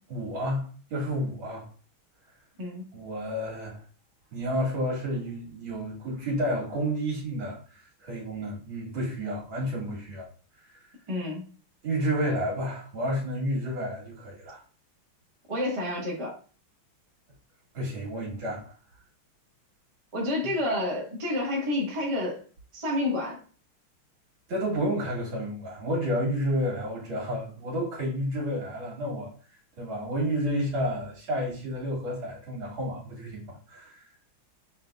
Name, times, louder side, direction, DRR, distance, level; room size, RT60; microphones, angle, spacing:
voice 1, 0.1-1.7 2.9-3.8 4.3-10.3 10.7-10.8 11.8-14.6 17.7-18.7 24.5-29.3 29.8-34.1, equal, 70° right, 2.5 m, -30 dB
voice 2, 11.1-11.4 15.5-16.3 20.1-22.4 22.7-23.4, left 1 dB, 20° right, 0.9 m, -29 dB
5.9 x 3.7 x 2.2 m
omnidirectional pair, 2.3 m